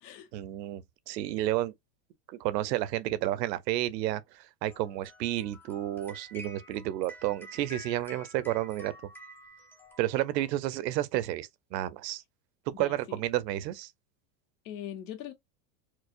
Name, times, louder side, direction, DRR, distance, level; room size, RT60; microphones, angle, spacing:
voice 1, 0.3-1.7 2.3-8.9 10.0-12.2 12.8-13.9, right 14 dB, 80° right, 0.7 m, -31 dB
sound 1, 4.7-10.5, left 1 dB, 5° left, 0.5 m, -50 dB
voice 2, 12.7-13.2 14.6-15.3, left 10 dB, 80° left, 1.1 m, -41 dB
4.7 x 2.1 x 2.4 m
supercardioid pair, 125°, 49 cm